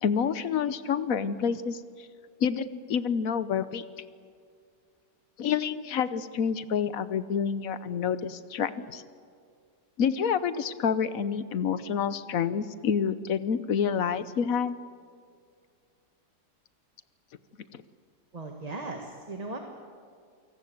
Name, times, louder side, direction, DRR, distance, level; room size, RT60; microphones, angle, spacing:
voice 1, 0.0-1.8 2.4-3.8 5.4-9.0 10.0-14.8 17.7-17.8, left 7 dB, 60° left, 14 dB, 1.2 m, -28 dB
voice 2, 18.3-19.6, right 2 dB, 25° right, 2 dB, 1.7 m, -37 dB
28.5 x 18.5 x 8.0 m, 2.2 s
omnidirectional pair, 1.8 m